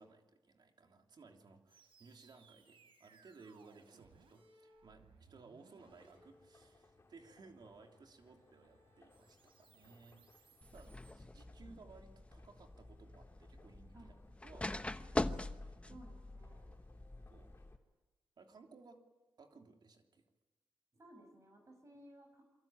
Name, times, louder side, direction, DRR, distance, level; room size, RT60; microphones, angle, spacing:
voice 1, 0.0-15.8 16.9-17.5 18.4-19.0 19.4-20.3, right 4 dB, 55° right, 3 dB, 3.1 m, -60 dB
sound 1, 1.7-11.1, right 4 dB, 85° right, 5.5 m, -67 dB
sound 2, 5.8-17.8, left 3 dB, 30° left, 3.7 m, -68 dB
sound 3, 10.6-17.8, left 2 dB, 15° left, 1.1 m, -43 dB
voice 2, 15.8-16.7 20.9-22.4, right 1 dB, 35° right, 3 dB, 7.3 m, -59 dB
27.5 x 23.5 x 8.9 m, 1.2 s
cardioid pair, 100°, 9 cm